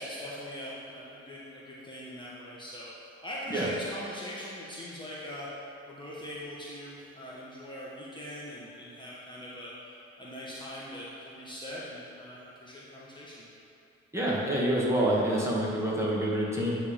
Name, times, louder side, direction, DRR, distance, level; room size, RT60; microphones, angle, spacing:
voice 1, 0.0-2.9 3.2-5.5 5.9-9.7 10.2-13.4, equal, 15° left, -7 dB, 1.2 m, -41 dB
voice 2, 14.1-16.8, right 1 dB, 10° right, -6 dB, 1.6 m, -27 dB
9.5 x 3.6 x 5.1 m, 2.8 s
cardioid pair, 90°, 30 cm